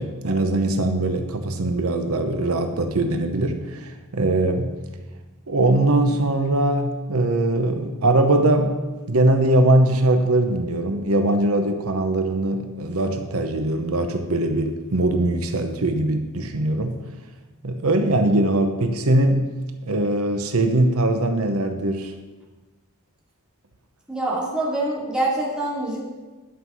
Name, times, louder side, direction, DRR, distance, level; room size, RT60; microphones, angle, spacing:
voice 1, 0.0-4.7 5.5-8.8 9.1-17.0 17.6-19.4 19.8-22.1, right 1 dB, 90° right, 6 dB, 0.9 m, -21 dB
voice 2, 24.1-26.0, right 2 dB, 5° right, -5 dB, 2.4 m, -25 dB
11.0 x 5.6 x 6.2 m, 1.3 s
head